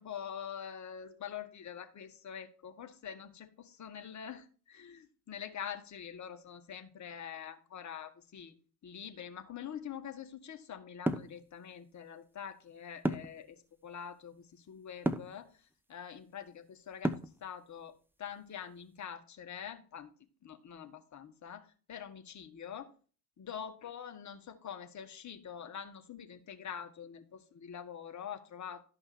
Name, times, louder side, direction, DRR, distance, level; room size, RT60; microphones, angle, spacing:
voice 1, 0.0-8.5 8.8-15.6 15.9-17.9 18.2-20.1 20.4-22.9 23.4-28.8, left 8 dB, 35° left, 1.7 m, -45 dB
sound 1, 11.1-11.3 13.0-13.4 15.0-15.3 17.0-17.4, right 1 dB, 5° right, 0.8 m, -31 dB
12.5 x 5.4 x 4.4 m
hypercardioid pair, 65°, 48 cm